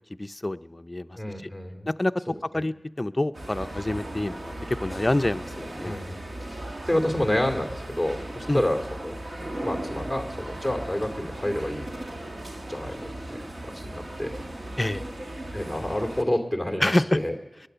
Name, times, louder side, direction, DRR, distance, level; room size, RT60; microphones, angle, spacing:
voice 1, 0.2-1.2 1.9-2.1 2.5-4.4 4.7-6.0 8.5-8.6 14.8-15.0 16.8-17.0, left 1 dB, 30° left, 10 dB, 0.5 m, -27 dB
voice 2, 1.2-1.9 2.3-2.6 5.8-11.9 12.7-14.3 15.5-17.3, left 1 dB, 10° right, 2 dB, 2.5 m, -29 dB
sound 1, 3.3-16.2, right 1 dB, 55° right, 1.5 m, -37 dB
22.0 x 8.6 x 6.8 m, 1.0 s
wide cardioid pair, 50°, 0 cm